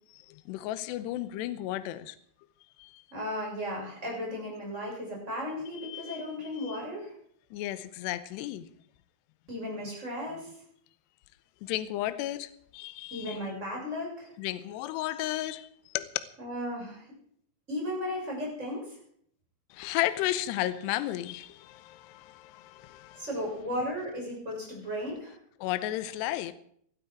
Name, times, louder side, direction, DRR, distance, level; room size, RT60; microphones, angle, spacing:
voice 1, 0.5-2.2 2.8-3.0 5.8-6.2 6.6-6.8 7.5-8.6 11.6-13.4 14.4-15.7 15.9-16.1 19.7-23.3 25.6-26.5, left 14 dB, 80° left, 2.7 m, -33 dB
voice 2, 3.1-7.1 9.5-10.5 13.1-14.3 16.4-17.0 17.7-18.9 23.2-25.3, left 1 dB, 15° right, 6.7 m, -35 dB
18.5 x 12.5 x 4.6 m
omnidirectional pair, 5.3 m